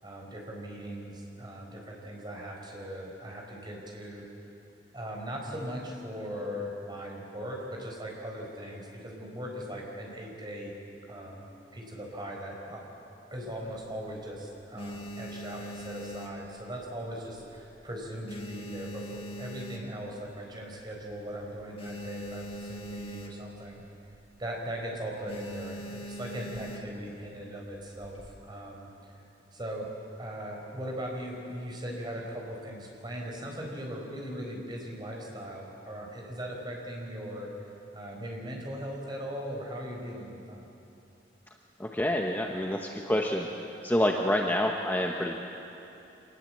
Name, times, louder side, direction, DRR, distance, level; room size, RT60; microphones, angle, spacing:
voice 1, 0.0-4.3 4.9-10.7 11.1-11.5 11.7-12.8 13.3-23.8 24.4-29.2 29.5-29.9 30.2-37.5 37.9-40.7, equal, 25° right, 0 dB, 4.4 m, -39 dB
sound 1, 13.5-14.2 14.6-17.1 17.4-17.7 18.0-20.3 20.7-20.8 21.0-21.1 21.5-23.7 24.0-24.2 24.5-24.8 25.3-27.1 27.8-28.4, right 1 dB, 30° left, 1.8 m, -42 dB
voice 2, 41.8-43.5 43.8-45.4, left 1 dB, 10° left, 1 dB, 1.0 m, -27 dB
25.0 x 19.5 x 7.6 m, 2.9 s
head